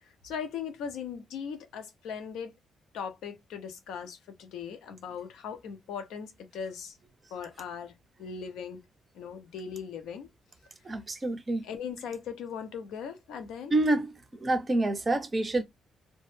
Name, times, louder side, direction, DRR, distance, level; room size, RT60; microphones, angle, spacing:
voice 1, 0.0-2.5 2.9-7.0 7.3-7.9 8.2-8.8 9.1-10.3 11.6-13.7, left 7 dB, 85° left, 0.5 m, -39 dB
voice 2, 10.9-11.6 13.7-14.1 14.4-15.6, right 2 dB, 30° right, 0.5 m, -27 dB
2.1 x 2.0 x 3.1 m
cardioid pair, 90°, 0 cm